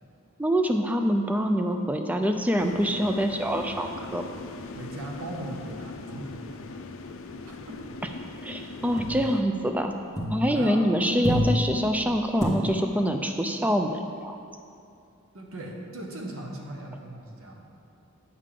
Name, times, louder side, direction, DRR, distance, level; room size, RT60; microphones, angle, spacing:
voice 1, 0.4-4.2 8.4-9.9 10.3-14.4, equal, 5° right, 5 dB, 0.3 m, -25 dB
sound 1, 2.3-6.0 6.3-6.7 6.9-10.8 11.1-12.5, equal, 15° left, 0.9 m, -33 dB
sound 2, 2.6-9.4, left 3 dB, 65° left, 0.5 m, -40 dB
voice 2, 4.7-6.8 7.5-7.7 10.5-10.8 15.3-17.6, right 1 dB, 75° right, 0 dB, 1.0 m, -38 dB
8.5 x 6.6 x 3.7 m, 2.5 s
head